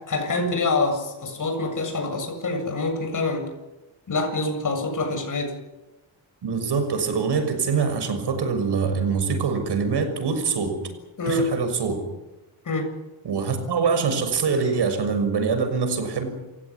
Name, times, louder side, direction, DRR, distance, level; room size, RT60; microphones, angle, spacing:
voice 1, 0.0-3.5 4.1-5.5 11.2-11.5 12.6-12.9, left 2 dB, 40° left, 5 dB, 7.5 m, -26 dB
voice 2, 6.4-10.8 11.3-12.0 13.2-16.3, right 5 dB, 55° right, 8 dB, 6.3 m, -24 dB
28.5 x 16.5 x 9.8 m, 1.0 s
cardioid pair, 120°, 47 cm